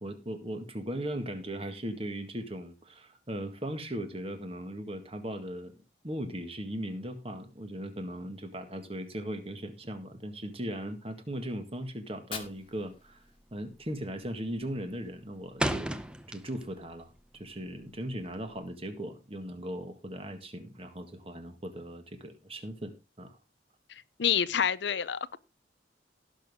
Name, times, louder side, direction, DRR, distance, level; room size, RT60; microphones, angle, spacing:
voice 1, 0.0-5.7 6.0-13.2 13.5-16.0 16.3-23.4, right 1 dB, 30° right, 1.8 m, -38 dB
Fire, 12.0-14.0, left 6 dB, 30° left, 1.6 m, -46 dB
sound 1, 12.4-12.8 13.1-13.4 13.7-14.2 14.5-16.9 17.2-18.6, right 1 dB, 5° right, 0.7 m, -35 dB
voice 2, 24.2-25.4, left 8 dB, 65° left, 0.6 m, -27 dB
18.0 x 6.4 x 3.6 m
head